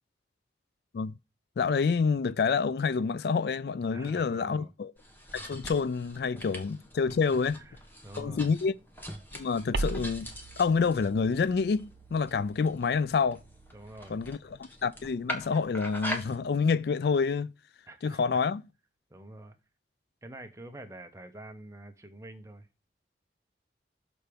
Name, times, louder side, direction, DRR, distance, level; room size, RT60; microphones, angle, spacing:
voice 1, 1.6-4.9 5.3-7.6 8.2-8.7 9.3-10.3 10.6-13.4 14.1-17.5 18.0-18.6, left 5 dB, 60° left, 0.3 m, -28 dB
voice 2, 3.9-4.7 7.1-8.5 13.7-14.2 17.9-18.4 19.1-19.6 20.2-22.7, right 1 dB, 15° right, 1.0 m, -47 dB
sound 1, 5.0-16.4, equal, 10° left, 1.4 m, -43 dB
sound 2, 9.7-14.6, right 3 dB, 70° right, 0.7 m, -40 dB
6.7 x 4.5 x 5.1 m
head